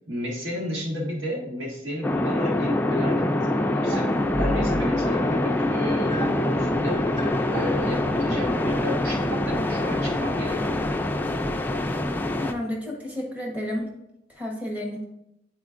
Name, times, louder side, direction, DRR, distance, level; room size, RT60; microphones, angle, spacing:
voice 1, 0.1-4.1 4.4-10.9, equal, 90° right, -3 dB, 1.6 m, -33 dB
sound 1, 2.0-12.5, left 1 dB, 10° left, 0.3 m, -25 dB
sound 2, 3.9-10.1, right 1 dB, 30° right, 1.9 m, -35 dB
voice 2, 12.4-13.9 14.3-15.0, left 1 dB, 10° right, -2 dB, 1.0 m, -31 dB
9.5 x 4.2 x 2.5 m, 0.85 s
head